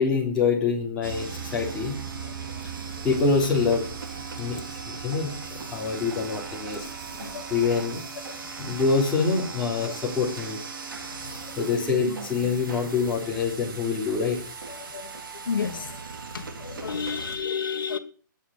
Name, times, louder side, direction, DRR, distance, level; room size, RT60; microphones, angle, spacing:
voice 1, 0.0-2.0 3.0-3.8 4.4-4.6 4.9-6.9 7.5-8.0 8.6-10.6 11.6-14.4, left 5 dB, 5° left, 3.5 m, -25 dB
sound 1, 1.0-17.4, right 5 dB, 90° right, 3.8 m, -38 dB
voice 2, 15.5-15.9 16.3-18.0, left 6 dB, 85° left, 1.5 m, -31 dB
19.0 x 7.3 x 6.5 m
hypercardioid pair, 175°, 11 cm